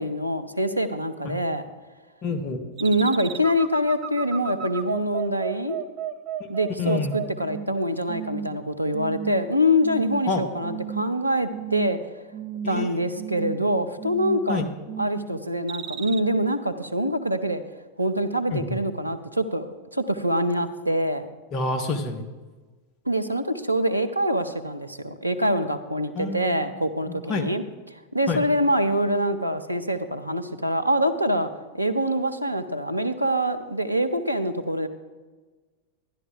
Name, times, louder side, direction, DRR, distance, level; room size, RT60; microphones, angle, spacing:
voice 1, 0.0-1.7 2.8-5.8 6.5-12.0 12.7-14.6 15.0-17.6 18.0-21.3 23.1-27.6 27.9-31.5 31.7-34.9, equal, 85° right, 9 dB, 0.6 m, -25 dB
voice 2, 2.2-2.6 6.8-7.2 10.3-10.5 12.6-13.0 14.5-14.7 18.5-18.8 21.5-22.3 26.1-26.5 27.3-27.5 28.3-28.4, left 3 dB, 35° left, 5 dB, 1.4 m, -27 dB
sound 1, 2.8-7.7 8.1-8.6 8.9-9.4 9.8-10.2 10.6-11.2 11.5-12.0 12.3-12.8 13.1-13.6 14.0-14.5 14.9-15.3 15.7-16.2, right 9 dB, 30° right, 0.6 m, -33 dB
12.5 x 11.0 x 3.8 m, 1.3 s
figure-of-eight pair, 90°, 0 cm